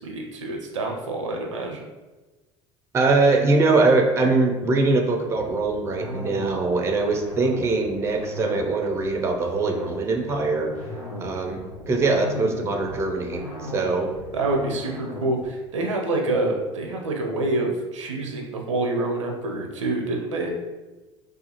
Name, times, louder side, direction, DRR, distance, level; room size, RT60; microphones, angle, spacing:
voice 1, 0.0-1.8 14.3-20.5, right 2 dB, 75° right, 1 dB, 0.5 m, -27 dB
voice 2, 2.9-10.7 11.2-14.1, right 3 dB, 15° right, 3 dB, 0.3 m, -22 dB
sound 1, 5.3-15.4, left 1 dB, 85° left, 0.6 m, -37 dB
2.3 x 2.3 x 2.8 m, 1.2 s
figure-of-eight pair, 65°, 16 cm